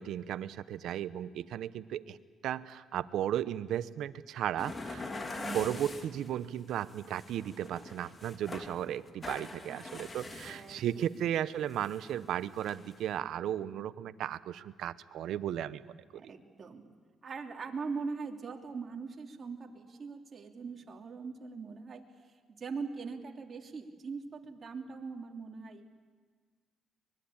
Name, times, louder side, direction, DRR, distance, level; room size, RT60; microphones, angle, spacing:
voice 1, 0.0-2.2 2.4-5.1 5.5-16.2, right 10 dB, 80° right, 14 dB, 0.8 m, -35 dB
sound 1, 4.6-6.3 6.7-8.8 9.1-11.0 11.7-12.1 12.6-13.1, left 3 dB, 30° left, 2.8 m, -43 dB
voice 2, 5.4-5.9 9.7-9.8 10.4-11.2 16.1-16.8 17.2-22.0 22.5-26.0, right 4 dB, 40° right, 2 dB, 3.0 m, -41 dB
24.0 x 21.5 x 8.7 m, 1.5 s
cardioid pair, 90°, 0 cm